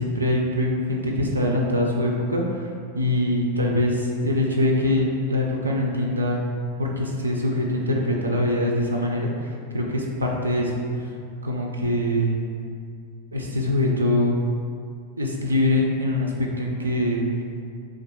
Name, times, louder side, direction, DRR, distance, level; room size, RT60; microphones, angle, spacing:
voice 1, 0.0-2.7 2.9-6.4 6.8-10.8 11.4-12.4 13.3-14.4 15.2-17.3, left 1 dB, 80° right, -1 dB, 0.3 m, -23 dB
2.5 x 2.4 x 3.6 m, 2.3 s
figure-of-eight pair, 90°, 0 cm